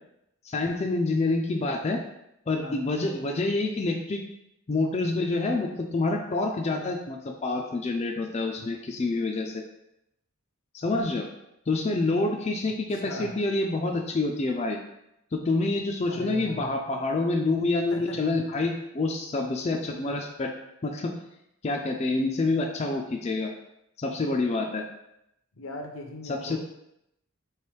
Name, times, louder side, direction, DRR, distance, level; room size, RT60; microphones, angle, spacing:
voice 1, 0.4-2.0 2.5-4.2 4.7-9.6 10.7-11.3 11.7-14.8 15.3-20.5 20.8-21.1 21.6-23.5 24.0-24.8 26.3-26.6, left 2 dB, 30° left, 2 dB, 0.4 m, -27 dB
voice 2, 12.9-13.4 16.1-16.8 17.9-18.4 25.6-26.6, left 2 dB, 85° left, 3 dB, 0.7 m, -39 dB
3.3 x 3.1 x 4.5 m, 0.82 s
head